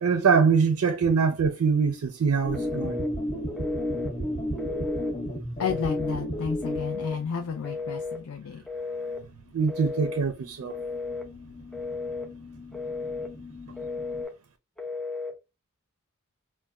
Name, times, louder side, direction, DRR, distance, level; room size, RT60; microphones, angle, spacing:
voice 1, 0.0-3.0 9.5-10.8, right 5 dB, 70° right, 0.4 m, -23 dB
sound 1, 2.4-7.8 8.3-8.4 8.6-8.7 8.9-9.7 10.0-14.2, equal, 35° left, 1.1 m, -34 dB
Telephone, 2.5-3.1 3.6-4.1 4.6-5.2 5.6-6.2 6.6-7.2 7.6-8.2 8.7-9.2 9.7-10.3 10.7-11.3 11.7-12.3 12.7-13.3 13.8-14.3 14.8-15.4, left 4 dB, 5° left, 0.3 m, -34 dB
voice 2, 5.6-8.6, left 6 dB, 80° left, 0.4 m, -32 dB
4.1 x 2.1 x 2.2 m
head